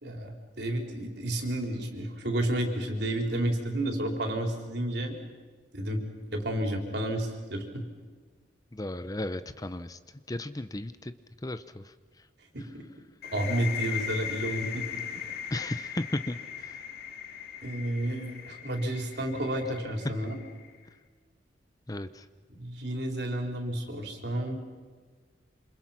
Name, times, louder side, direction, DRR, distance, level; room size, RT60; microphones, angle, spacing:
voice 1, 0.0-5.1 5.7-6.0 6.3-7.6 12.5-12.8 13.3-15.0 17.6-20.4 22.6-24.6, right 1 dB, 60° right, 2 dB, 4.3 m, -31 dB
voice 2, 8.7-10.0 10.3-11.1 11.4-11.9 15.5-16.8 21.9-22.3, left 1 dB, 20° left, 11 dB, 0.7 m, -35 dB
sound 1, 13.2-20.8, left 8 dB, 55° left, 2.0 m, -39 dB
27.5 x 27.5 x 5.9 m, 1.5 s
head